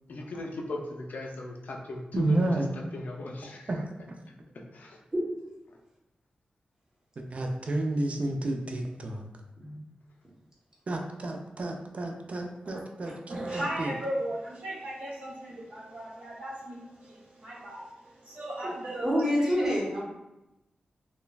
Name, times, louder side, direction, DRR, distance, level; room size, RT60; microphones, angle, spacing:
voice 1, 0.1-2.5 2.9-3.7 4.7-5.0 5.7-5.8, left 2 dB, 70° left, 0 dB, 0.4 m, -38 dB
voice 2, 2.1-2.7 3.7-3.9 7.3-9.3 10.9-14.0, right 2 dB, 45° right, 3 dB, 0.4 m, -30 dB
voice 3, 13.3-19.7, right 1 dB, 75° right, -10 dB, 1.0 m, -37 dB
voice 4, 19.0-20.0, equal, 20° right, -6 dB, 1.0 m, -26 dB
3.1 x 2.1 x 2.3 m, 0.95 s
wide cardioid pair, 85°, 3 cm